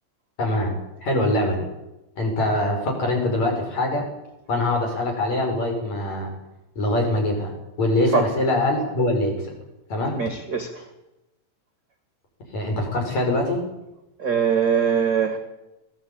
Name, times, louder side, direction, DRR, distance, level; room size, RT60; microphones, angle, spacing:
voice 1, 0.4-0.7 1.0-1.7 2.2-4.1 4.5-6.3 6.8-7.5 7.8-9.5 9.9-10.2 12.5-13.6, left 1 dB, 40° left, 2 dB, 6.9 m, -23 dB
voice 2, 10.2-10.8 14.2-15.4, right 7 dB, 35° right, 6 dB, 2.0 m, -22 dB
21.0 x 17.0 x 8.8 m, 0.93 s
omnidirectional pair, 5.0 m